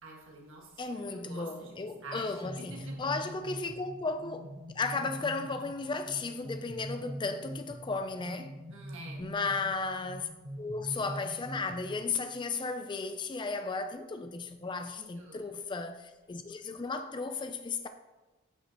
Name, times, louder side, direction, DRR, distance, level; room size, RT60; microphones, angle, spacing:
voice 1, 0.0-1.8 2.0-3.1 8.7-9.2 14.9-15.5, right 2 dB, 65° right, 1.7 m, -48 dB
voice 2, 0.8-8.6 9.2-10.3 10.6-17.9, left 4 dB, 20° left, 0.3 m, -35 dB
sound 1, 1.9-12.4, equal, 25° right, 1.0 m, -44 dB
8.7 x 5.9 x 2.9 m
head